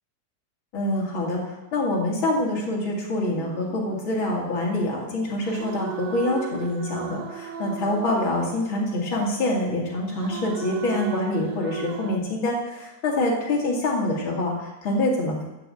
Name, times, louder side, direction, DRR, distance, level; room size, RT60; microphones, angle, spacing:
voice 1, 0.7-15.5, left 1 dB, 45° left, -2 dB, 2.6 m, -26 dB
sound 1, 3.3-4.8 5.4-9.2 10.1-12.2, right 9 dB, 80° right, 2.4 m, -37 dB
12.5 x 5.1 x 7.8 m, 0.98 s
omnidirectional pair, 3.4 m